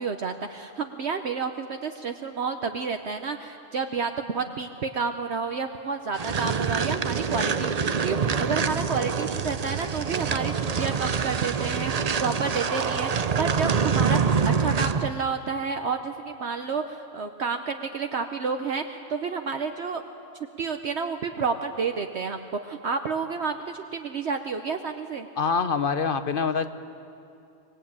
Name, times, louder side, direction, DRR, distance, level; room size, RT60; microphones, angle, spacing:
voice 1, 0.0-14.2 14.5-20.0 20.6-25.3, right 5 dB, 60° right, 6 dB, 1.1 m, -30 dB
sound 1, 6.1-15.1, right 6 dB, 40° right, 0.6 m, -26 dB
voice 2, 25.4-26.7, left 5 dB, 45° left, 11 dB, 1.0 m, -25 dB
24.5 x 20.0 x 8.7 m, 2.6 s
omnidirectional pair, 1.4 m